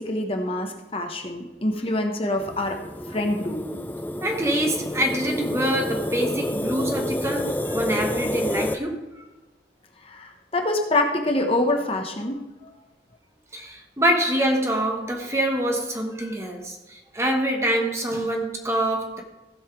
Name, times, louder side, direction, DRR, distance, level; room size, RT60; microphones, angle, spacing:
voice 1, 0.0-2.8 3.1-3.6 10.0-12.7, left 1 dB, 30° left, 1.0 m, -26 dB
sound 1, 2.4-8.8, left 1 dB, 10° left, 0.4 m, -29 dB
voice 2, 4.2-9.2 13.5-19.2, right 1 dB, 15° right, 1.1 m, -25 dB
15.5 x 5.7 x 4.7 m
head